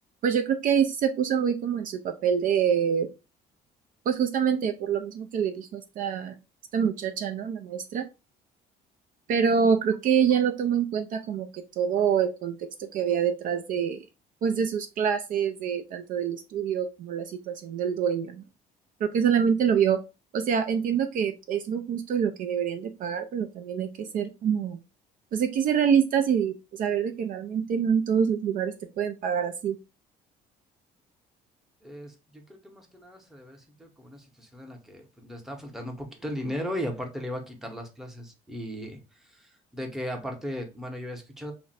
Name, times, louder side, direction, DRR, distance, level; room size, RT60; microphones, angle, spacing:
voice 1, 0.2-3.1 4.1-6.3 6.7-8.1 9.3-14.1 14.4-18.4 19.0-20.0 20.3-24.8 25.3-29.8, right 7 dB, 55° right, 7 dB, 0.4 m, -26 dB
voice 2, 31.8-41.5, equal, ahead, 2 dB, 0.8 m, -37 dB
2.5 x 2.1 x 3.9 m, 0.27 s
cardioid pair, 110°, 17 cm